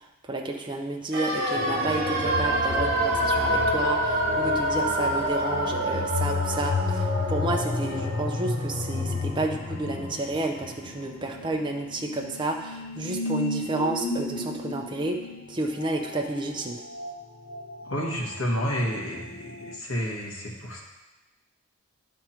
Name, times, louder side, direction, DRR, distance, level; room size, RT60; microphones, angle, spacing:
voice 1, 0.2-15.2 15.5-16.8, right 2 dB, 20° right, 1 dB, 0.5 m, -31 dB
sound 1, 1.1-11.1 11.3-11.4, right 1 dB, 50° right, 1.1 m, -28 dB
sound 2, 1.5-19.8, left 3 dB, 45° left, 0.5 m, -33 dB
voice 2, 17.8-20.8, equal, 75° left, -3 dB, 1.6 m, -30 dB
10.5 x 3.6 x 4.4 m, 1.0 s
head